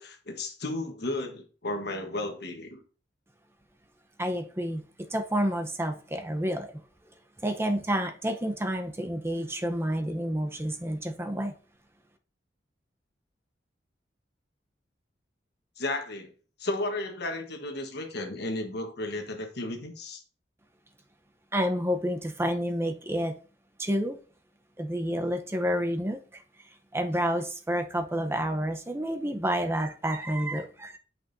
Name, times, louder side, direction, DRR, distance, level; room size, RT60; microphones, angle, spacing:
voice 1, 0.0-2.8 15.8-16.3 16.6-20.2, left 2 dB, 65° left, 1.3 m, -33 dB
voice 2, 4.2-4.8 5.1-6.8 7.4-11.5 21.5-23.3 23.8-24.2 24.8-26.4 26.9-31.0, equal, 15° right, 0.7 m, -29 dB
8.4 x 6.1 x 2.6 m
head